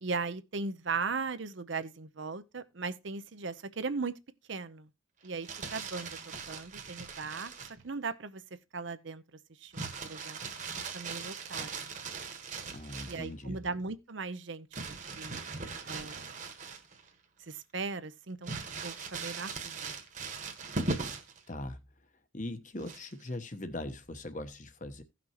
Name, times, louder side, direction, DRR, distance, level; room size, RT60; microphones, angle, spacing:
voice 1, 0.0-4.2 4.5-4.9 5.2-6.2 6.5-7.5 7.8-8.4 8.7-9.2 9.6-10.4 10.9-11.9 13.1-14.7 15.2-15.6 15.8-16.4 17.4-18.5 18.8-20.0, right 4 dB, 65° right, 0.7 m, -38 dB
Crumpling crinkling, 5.2-7.8 9.7-13.3 14.7-17.1 17.5-17.6 18.4-21.4 22.8-23.3, right 4 dB, 40° right, 1.4 m, -39 dB
voice 2, 12.7-13.6 21.5-21.8 22.3-25.0, left 1 dB, 40° left, 1.1 m, -40 dB
16.5 x 6.0 x 2.9 m
head